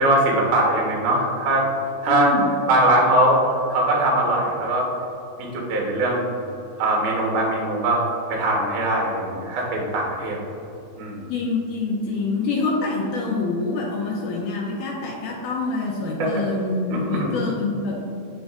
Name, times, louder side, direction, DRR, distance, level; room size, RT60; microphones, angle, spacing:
voice 1, 0.0-1.7 2.0-2.3 2.7-3.4 3.7-4.9 5.4-6.3 6.8-8.0 8.3-10.4 11.0-11.2 16.2-16.4 16.9-17.3, right 1 dB, 80° right, -2 dB, 1.2 m, -21 dB
voice 2, 2.1-2.5 11.3-16.8 17.1-18.0, left 3 dB, 85° left, -2 dB, 1.7 m, -26 dB
7.5 x 6.1 x 2.5 m, 2.8 s
omnidirectional pair, 4.3 m